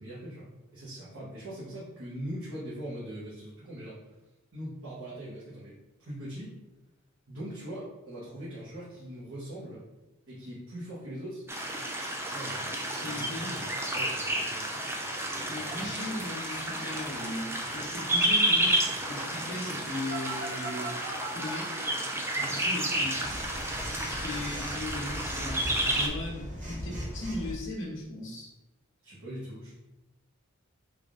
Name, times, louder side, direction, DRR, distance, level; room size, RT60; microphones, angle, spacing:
voice 1, 0.0-4.2 4.5-5.7 6.0-6.6 7.3-9.8 10.3-11.4 12.0-15.8 29.0-29.7, right 1 dB, 75° right, -8 dB, 1.0 m, -42 dB
sound 1, 11.5-26.1, right 1 dB, 10° right, 0.3 m, -31 dB
voice 2, 13.0-13.5 15.5-21.0 21.3-21.7 22.3-23.3 24.0-28.5, left 1 dB, 60° left, -4 dB, 0.9 m, -38 dB
Telephone, 20.1-21.5 23.2-27.5, right 1 dB, 35° right, 0.8 m, -38 dB
3.4 x 2.4 x 3.6 m, 0.98 s
head